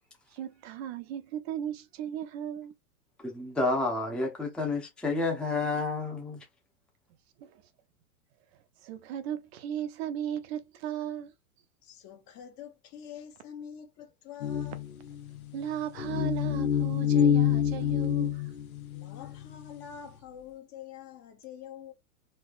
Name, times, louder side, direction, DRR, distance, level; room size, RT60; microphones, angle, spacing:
voice 1, 0.3-2.7 7.4-7.6 8.8-11.3 15.5-18.5, right 10 dB, 50° right, 0.5 m, -36 dB
voice 2, 3.2-6.4, left 3 dB, ahead, 0.6 m, -30 dB
voice 3, 11.8-14.8 18.9-21.9, left 8 dB, 40° left, 1.1 m, -46 dB
sound 1, 14.4-19.6, left 9 dB, 75° left, 0.7 m, -27 dB
3.2 x 2.8 x 2.4 m
hypercardioid pair, 105°, 43 cm